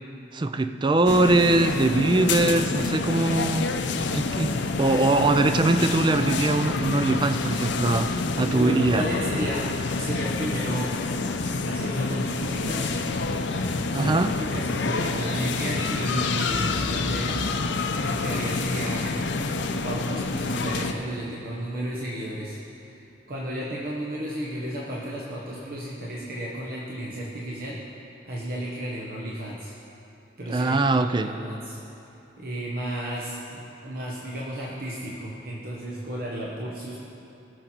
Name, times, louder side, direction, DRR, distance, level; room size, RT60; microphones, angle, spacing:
voice 1, 0.3-3.7 4.1-9.0 13.9-14.3 30.5-31.3, right 2 dB, 25° right, 9 dB, 0.4 m, -22 dB
sound 1, 1.1-20.9, left 3 dB, 75° left, 0.6 m, -28 dB
voice 2, 8.5-9.7 9.9-11.0 11.7-13.1 13.4-23.0 23.3-27.8 28.2-29.8 30.4-31.8 32.4-37.0, right 1 dB, 55° right, -4 dB, 1.3 m, -33 dB
sound 2, 8.7-10.9 11.2-12.0 12.3-15.3 15.7-18.1, equal, 70° right, 2.8 m, -40 dB
18.5 x 6.7 x 4.5 m, 2.9 s
head